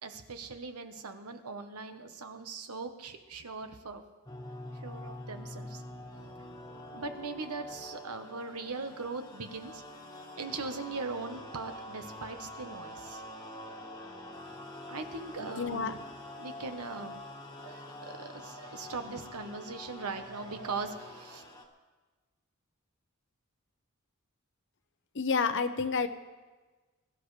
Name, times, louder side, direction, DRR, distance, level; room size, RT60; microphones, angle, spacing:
voice 1, 0.0-4.0 4.8-5.8 6.9-9.8 10.3-13.2 14.9-16.0 16.4-17.2 17.6-21.4, right 4 dB, 85° right, 7 dB, 1.2 m, -40 dB
sound 1, 4.3-21.6, left 1 dB, 20° left, 1.5 m, -46 dB
voice 2, 15.4-15.9 25.1-26.1, left 5 dB, 55° left, 9 dB, 0.8 m, -29 dB
22.5 x 12.5 x 3.3 m, 1.3 s
head